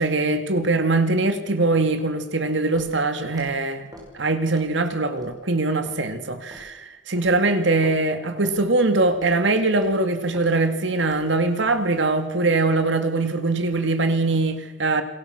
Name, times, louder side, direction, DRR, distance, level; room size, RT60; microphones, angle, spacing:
voice 1, 0.0-3.9 4.1-15.0, right 2 dB, 70° right, 2.1 m, -22 dB
Walk footsteps, 2.7-2.9 3.3-3.5 3.9-4.1 4.5-4.8 5.2-5.3 5.9-6.0 6.5-6.7 7.2-7.4 7.8-8.0 8.4-8.6 9.1-9.3 9.7-9.9 10.3-10.5 11.0-11.2 11.6-11.8, equal, 20° right, 5.3 m, -45 dB
28.5 x 20.5 x 6.5 m
head